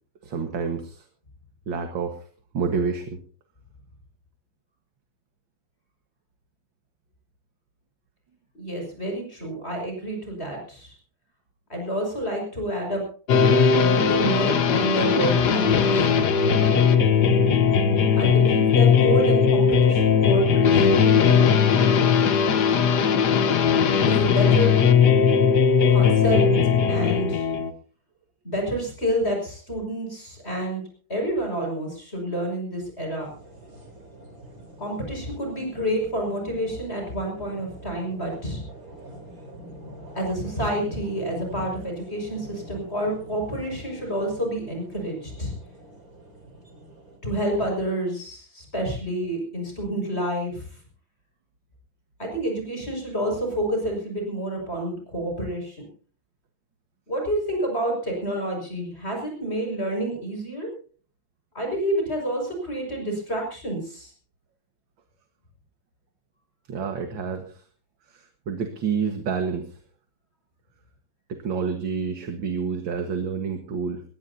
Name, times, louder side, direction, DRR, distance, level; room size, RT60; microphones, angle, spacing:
voice 1, 0.2-1.0 1.7-2.2 2.5-3.2 66.7-67.6 68.1-69.7 71.3-74.0, right 5 dB, 65° right, 5 dB, 2.3 m, -28 dB
voice 2, 8.5-10.9 11.7-13.0 13.8-16.2 18.1-21.2 24.1-24.8 25.9-26.4 26.9-27.4 28.4-30.8 31.1-33.3 34.8-38.6 40.1-45.5 47.2-50.6 52.2-55.8 57.1-60.7 61.5-64.1, right 1 dB, 30° left, 1 dB, 6.2 m, -28 dB
sound 1, 13.3-27.7, left 6 dB, 55° left, 1.6 m, -19 dB
sound 2, 33.2-47.2, right 1 dB, 40° right, 4.4 m, -44 dB
21.5 x 18.5 x 2.8 m, 0.42 s
omnidirectional pair, 2.3 m